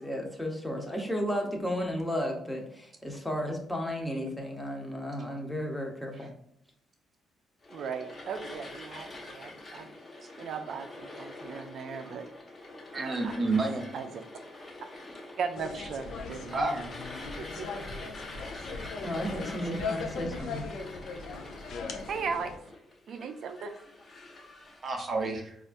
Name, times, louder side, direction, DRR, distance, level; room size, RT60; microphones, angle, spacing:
voice 1, 0.0-6.3 19.0-20.7, equal, 5° left, 1 dB, 0.8 m, -33 dB
sound 1, 7.6-24.9, left 2 dB, 35° left, 0.8 m, -45 dB
voice 2, 7.7-9.9 10.4-12.3 12.9-13.3 13.9-14.1 15.4-16.9 17.4-17.7 22.1-22.5 23.1-23.8, right 6 dB, 65° right, 8 dB, 0.4 m, -37 dB
voice 3, 12.9-13.9 15.7-15.9 16.5-16.8 24.8-25.6, right 3 dB, 40° right, 3 dB, 0.7 m, -30 dB
sound 2, 15.6-22.6, left 4 dB, 75° left, 0.5 m, -39 dB
4.1 x 2.4 x 2.5 m, 0.69 s
cardioid pair, 90°, 0 cm